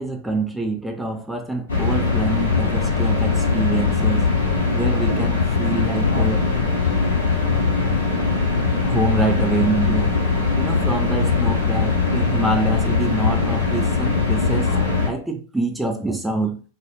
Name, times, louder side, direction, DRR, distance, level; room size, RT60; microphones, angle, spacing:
voice 1, 0.0-4.3 4.7-6.5 8.9-10.2 10.5-14.7 15.1-16.6, right 2 dB, 5° right, 0.4 m, -26 dB
sound 1, 1.7-15.1, left 4 dB, 70° left, 0.8 m, -20 dB
2.3 x 2.3 x 2.8 m
figure-of-eight pair, 90°, 0 cm